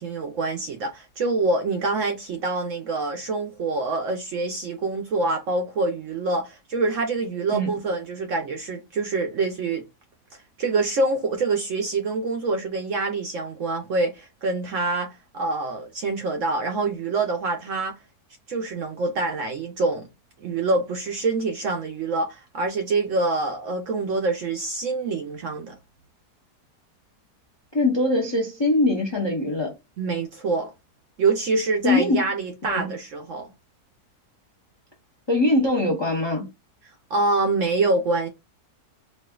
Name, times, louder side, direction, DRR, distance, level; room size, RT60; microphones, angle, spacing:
voice 1, 0.0-9.8 10.6-18.0 18.5-20.1 20.4-25.8 30.0-30.7 31.2-33.5 37.1-38.3, right 3 dB, 70° right, 0.8 m, -25 dB
voice 2, 27.7-29.7 31.8-32.3 32.6-32.9 35.3-36.5, left 2 dB, 30° left, 0.5 m, -22 dB
4.3 x 2.4 x 2.3 m
omnidirectional pair, 1.7 m